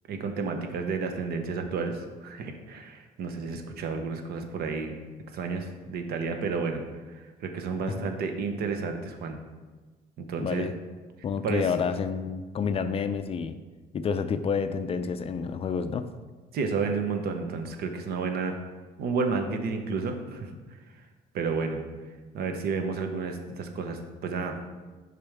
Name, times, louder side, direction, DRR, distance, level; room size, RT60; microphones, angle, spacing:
voice 1, 0.1-4.9 5.3-9.4 10.2-10.7 11.4-11.7 16.5-18.6 19.0-21.1 21.3-21.8 22.3-24.6, right 4 dB, 70° right, 6 dB, 0.9 m, -31 dB
voice 2, 10.4-10.7 11.2-13.6 13.9-16.0, left 6 dB, 35° left, 10 dB, 0.4 m, -29 dB
6.8 x 5.2 x 3.4 m, 1.3 s
cardioid pair, 110°, 17 cm